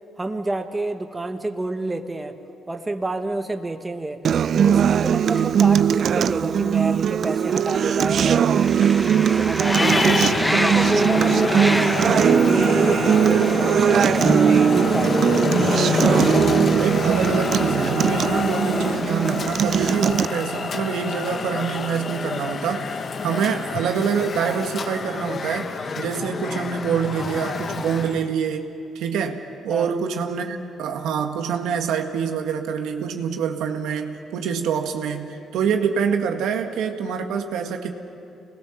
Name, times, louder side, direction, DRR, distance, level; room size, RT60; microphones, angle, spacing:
voice 1, 0.2-2.3 2.7-4.2 4.5-10.1 10.5-14.6 14.9-15.7 29.7-29.9, right 2 dB, 15° right, 6 dB, 1.4 m, -29 dB
Acoustic guitar, 4.2-20.3, right 8 dB, 60° right, 0.5 m, -20 dB
sound 1, 5.0-6.0 6.8-7.0 7.3-19.4, equal, ahead, 1.1 m, -30 dB
Traffic noise roadway noise, 9.6-28.3, left 5 dB, 45° left, 1.0 m, -27 dB
voice 2, 16.7-25.7 26.0-37.9, right 7 dB, 85° right, 4 dB, 1.7 m, -26 dB
27.5 x 20.5 x 7.2 m, 2.5 s
cardioid pair, 90°, 0 cm